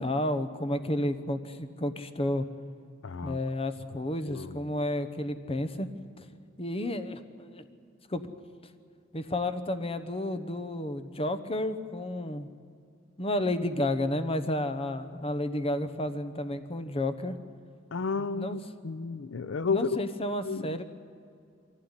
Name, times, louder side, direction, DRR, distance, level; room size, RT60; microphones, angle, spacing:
voice 1, 0.0-2.4 3.2-5.9 6.6-7.6 8.1-8.2 9.1-12.5 13.2-17.3 18.2-18.6 19.7-20.8, left 1 dB, 30° left, 9 dB, 1.0 m, -31 dB
voice 2, 3.0-3.4 4.3-4.6 17.9-20.0 20.4-20.8, left 4 dB, 75° left, 14 dB, 0.6 m, -32 dB
23.0 x 15.5 x 9.9 m, 2.4 s
head